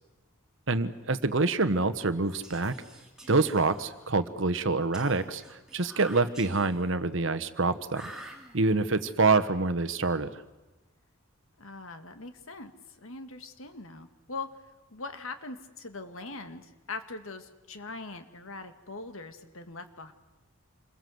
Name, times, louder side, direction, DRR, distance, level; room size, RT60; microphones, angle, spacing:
voice 1, 0.7-2.7 3.3-8.1 8.5-10.3, right 3 dB, 60° right, 12 dB, 1.2 m, -26 dB
Whispering, 2.2-4.2 4.9-7.0 7.9-8.9, right 1 dB, 5° right, 2.7 m, -48 dB
voice 2, 11.6-14.5 14.9-20.1, left 3 dB, 70° left, 8 dB, 2.0 m, -41 dB
27.5 x 22.0 x 7.9 m, 1.1 s
head